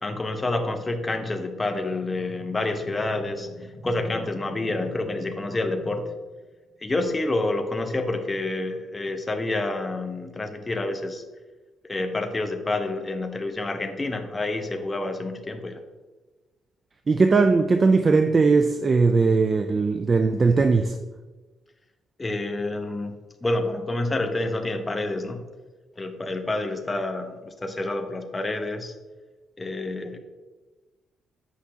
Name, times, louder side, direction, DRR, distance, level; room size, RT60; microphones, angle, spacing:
voice 1, 0.0-6.1 6.8-11.2 11.9-15.8 22.2-23.1 23.4-25.5 26.0-28.9 29.6-30.2, left 2 dB, 20° left, 5 dB, 0.8 m, -28 dB
voice 2, 17.1-21.0, right 4 dB, 35° right, 7 dB, 0.4 m, -19 dB
8.3 x 5.7 x 2.8 m, 1.2 s
cardioid pair, 90°, 0 cm